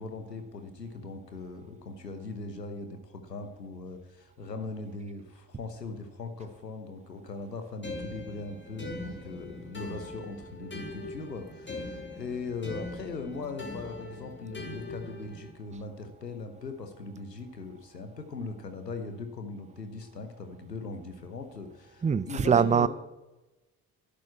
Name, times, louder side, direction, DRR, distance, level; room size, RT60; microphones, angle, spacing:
voice 1, 0.0-22.9, left 3 dB, 90° left, 7 dB, 1.0 m, -40 dB
sound 1, 7.8-15.5, left 2 dB, 25° left, 2.7 m, -41 dB
voice 2, 22.0-22.9, right 7 dB, 15° right, 18 dB, 0.6 m, -23 dB
11.5 x 9.1 x 8.4 m, 1.1 s
figure-of-eight pair, 40°, 48 cm